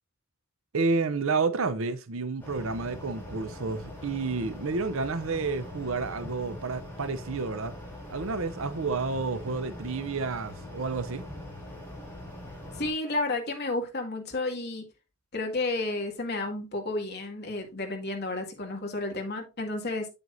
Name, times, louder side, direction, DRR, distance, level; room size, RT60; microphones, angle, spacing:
voice 1, 0.7-7.7 8.1-11.2, right 4 dB, 60° right, 0.7 m, -30 dB
sound 1, 2.4-12.9, left 1 dB, 10° left, 3.1 m, -42 dB
voice 2, 12.7-14.9 15.3-20.1, left 2 dB, 45° left, 2.1 m, -31 dB
7.9 x 7.7 x 2.6 m
head